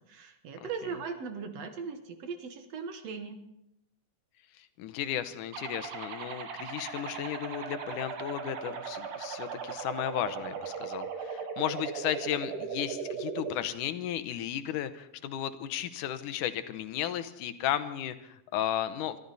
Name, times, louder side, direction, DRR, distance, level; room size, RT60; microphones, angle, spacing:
voice 1, 0.1-3.4, right 5 dB, 60° right, 6 dB, 2.2 m, -39 dB
voice 2, 4.6-19.2, left 11 dB, 90° left, 11 dB, 2.5 m, -34 dB
sound 1, 5.5-13.5, right 6 dB, 85° right, 3.1 m, -38 dB
24.5 x 14.0 x 4.1 m, 0.82 s
omnidirectional pair, 3.5 m